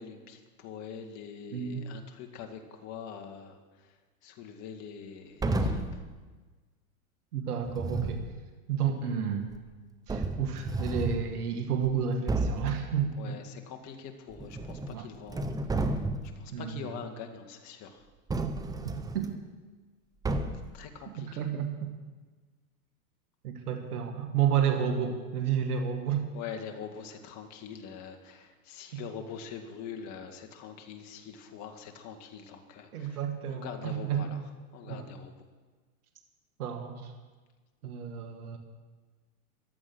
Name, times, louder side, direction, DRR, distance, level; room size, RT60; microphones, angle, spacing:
voice 1, 0.0-6.0 13.2-18.1 20.7-21.5 26.3-34.4 34.7-35.4, left 7 dB, 40° left, 5 dB, 2.0 m, -44 dB
voice 2, 1.5-1.8 7.3-8.2 8.7-9.5 10.1-13.4 14.9-15.1 16.5-16.9 19.1-19.4 21.1-21.9 23.4-26.3 28.9-29.0 32.9-34.3 34.9-35.0 36.6-37.1 37.8-38.6, right 8 dB, 80° right, 5 dB, 2.2 m, -31 dB
sound 1, 5.4-6.0 7.7-8.3 9.5-9.6 10.1-11.3 11.8-11.9 12.3-12.7 14.3-15.0 15.3-16.4 18.3-19.3 20.2-20.8, right 2 dB, 10° right, 0.8 m, -31 dB
14.5 x 12.0 x 6.2 m, 1.4 s
hypercardioid pair, 120°, 45 cm